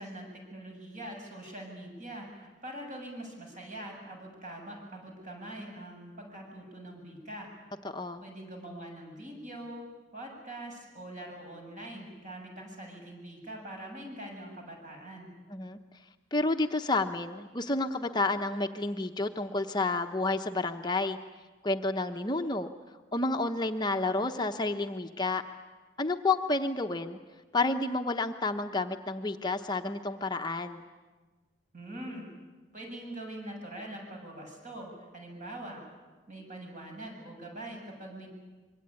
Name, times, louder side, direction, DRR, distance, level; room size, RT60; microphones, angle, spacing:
voice 1, 0.0-7.5 8.2-9.9 10.1-15.3 31.7-32.3 32.7-35.8 36.3-38.3, right 1 dB, 45° right, 1 dB, 7.6 m, -43 dB
voice 2, 7.8-8.2 15.5-15.8 16.3-21.2 21.6-22.7 23.1-25.4 26.0-27.2 27.5-30.8, left 2 dB, 25° left, 5 dB, 0.9 m, -30 dB
25.5 x 23.5 x 9.7 m, 1.3 s
head